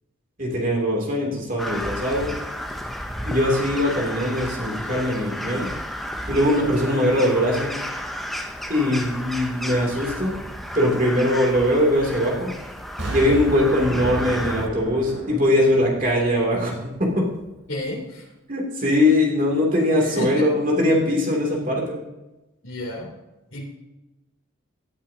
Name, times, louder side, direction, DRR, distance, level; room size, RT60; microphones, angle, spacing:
voice 1, 0.4-2.3 3.2-5.7 6.3-7.7 8.7-10.4 10.7-12.5 13.1-17.3 18.5-22.0, left 1 dB, 40° right, -1 dB, 2.8 m, -21 dB
Crow, 1.6-14.7, equal, ahead, 0.7 m, -32 dB
Explosion, 13.0-16.9 17.4-17.5, right 1 dB, 60° right, 3.7 m, -33 dB
voice 2, 17.7-18.2 20.0-20.5 22.6-23.1 23.5-23.6, left 1 dB, 70° left, -2 dB, 3.3 m, -30 dB
17.0 x 11.5 x 2.8 m, 1.0 s
head